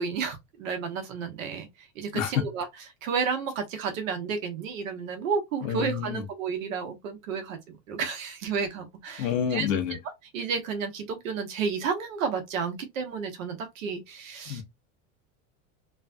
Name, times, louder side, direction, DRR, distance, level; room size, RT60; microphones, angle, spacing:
voice 1, 0.0-1.7 2.0-2.7 3.0-9.7 10.3-14.6, right 6 dB, 85° right, 1.1 m, -31 dB
voice 2, 5.6-6.2 9.2-10.0 14.5-14.6, left 8 dB, 85° left, 1.0 m, -28 dB
3.3 x 2.2 x 2.5 m
supercardioid pair, 120°, 39 cm